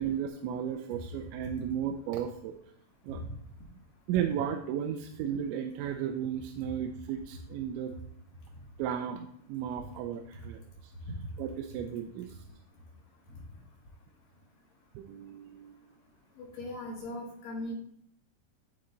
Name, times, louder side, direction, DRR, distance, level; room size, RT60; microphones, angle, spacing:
voice 1, 0.0-2.6 3.0-3.2 4.1-7.9 8.8-10.6 11.4-12.4 15.0-15.7, right 9 dB, 85° right, 4 dB, 2.9 m, -34 dB
voice 2, 16.4-17.7, left 1 dB, 60° left, -2 dB, 2.5 m, -39 dB
11.5 x 4.2 x 3.9 m, 0.67 s
omnidirectional pair, 5.2 m